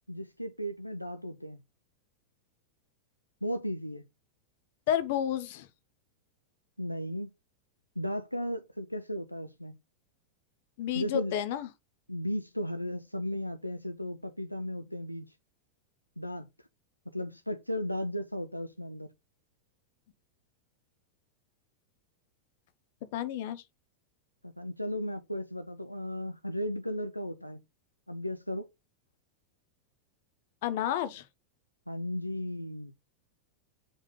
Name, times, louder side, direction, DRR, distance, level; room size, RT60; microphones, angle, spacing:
voice 1, 0.1-1.6 3.4-4.0 6.8-7.3 8.0-9.8 10.9-11.4 12.1-15.3 16.2-16.5 17.1-19.1 24.4-27.6 28.1-28.7 31.9-32.9, equal, 90° left, 0.5 m, -35 dB
voice 2, 4.9-5.7 10.8-11.7 23.1-23.6 30.6-31.2, left 10 dB, 50° left, 0.9 m, -30 dB
7.2 x 4.9 x 3.2 m
figure-of-eight pair, 90°, 0 cm